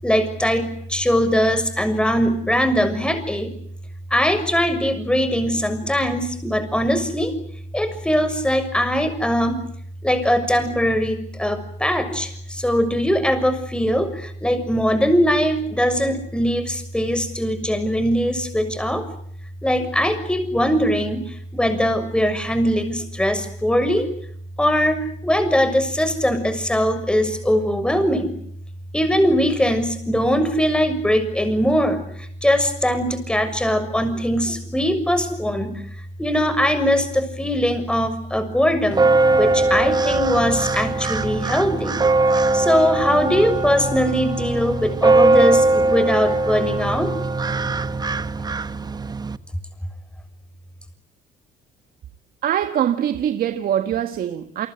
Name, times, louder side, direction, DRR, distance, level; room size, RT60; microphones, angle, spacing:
voice 1, 0.0-3.5 4.1-7.3 7.7-9.6 10.0-19.1 19.6-21.2 21.5-24.1 24.6-28.3 28.9-32.0 32.4-35.8 36.2-39.1 39.4-42.0 42.5-47.1, equal, 5° left, 6.5 m, -21 dB
sound 1, 38.9-49.4, right 2 dB, 25° right, 1.3 m, -20 dB
voice 2, 52.4-54.7, right 10 dB, 60° right, 1.8 m, -23 dB
29.5 x 24.0 x 8.3 m
cardioid pair, 110°, 17 cm